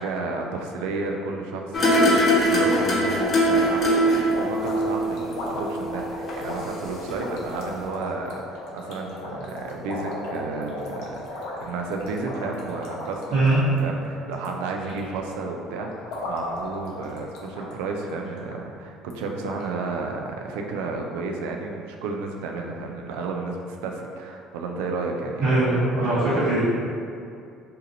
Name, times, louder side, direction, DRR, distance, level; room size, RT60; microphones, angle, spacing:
voice 1, 0.0-4.1 4.4-26.6, right 3 dB, 75° right, 2 dB, 0.3 m, -32 dB
sound 1, 1.7-6.8 7.1-7.2, equal, 45° left, 1.0 m, -22 dB
sound 2, 1.8-14.6 14.9-15.3 15.8-17.7 18.0-18.1 18.5-18.6 19.1-19.2 19.5-19.6, left 2 dB, 70° left, 0.6 m, -36 dB
voice 2, 25.4-26.6, right 2 dB, 60° right, -12 dB, 1.0 m, -21 dB
2.7 x 2.5 x 3.8 m, 2.5 s
hypercardioid pair, 65°, 0 cm